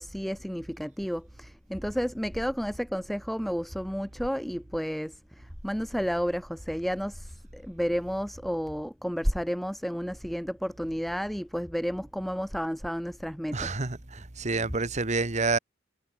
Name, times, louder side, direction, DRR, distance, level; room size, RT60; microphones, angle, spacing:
voice 1, 0.0-13.7, equal, ahead, 4.0 m, -31 dB
voice 2, 13.5-15.6, right 3 dB, 40° right, 1.4 m, -28 dB
head